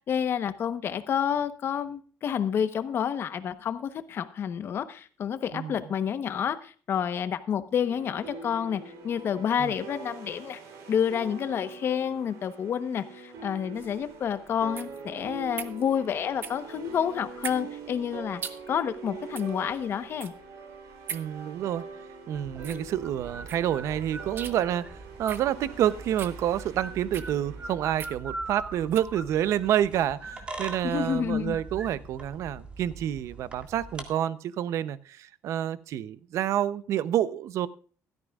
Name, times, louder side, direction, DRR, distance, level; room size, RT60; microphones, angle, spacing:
voice 1, 0.1-10.6 10.9-18.4 18.7-20.3 30.8-31.6, left 8 dB, 45° left, 12 dB, 1.0 m, -29 dB
sound 1, 7.8-27.8, right 4 dB, 80° right, 3.4 m, -44 dB
sound 2, 13.7-29.1, right 7 dB, 40° right, 1.1 m, -43 dB
voice 2, 21.1-21.9 22.3-24.9 25.2-37.7, right 11 dB, 60° right, 16 dB, 0.7 m, -28 dB
sound 3, 22.3-34.1, right 3 dB, 20° right, 2.0 m, -42 dB
16.0 x 13.5 x 2.4 m, 0.41 s
cardioid pair, 160°, 6 cm